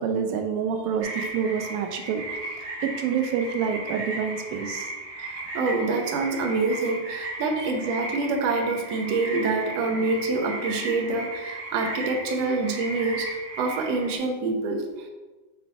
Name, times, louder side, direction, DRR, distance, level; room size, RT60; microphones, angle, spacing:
voice 1, 0.0-4.9 7.6-7.7, right 7 dB, 85° right, 5 dB, 2.5 m, -28 dB
sound 1, 1.0-14.2, right 2 dB, 40° right, 1.4 m, -35 dB
voice 2, 5.2-15.1, right 3 dB, 70° right, 2 dB, 1.6 m, -26 dB
6.8 x 4.0 x 4.7 m, 1.2 s
omnidirectional pair, 4.0 m